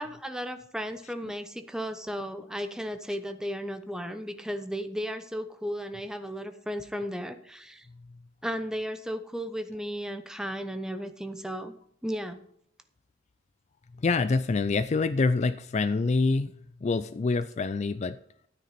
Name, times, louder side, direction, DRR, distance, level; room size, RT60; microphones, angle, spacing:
voice 1, 0.0-7.9 8.4-11.7 12.0-12.4, equal, 5° right, 8 dB, 0.9 m, -35 dB
voice 2, 14.0-16.5 16.8-18.2, left 3 dB, 35° left, 13 dB, 0.4 m, -26 dB
13.0 x 9.2 x 4.2 m, 0.67 s
head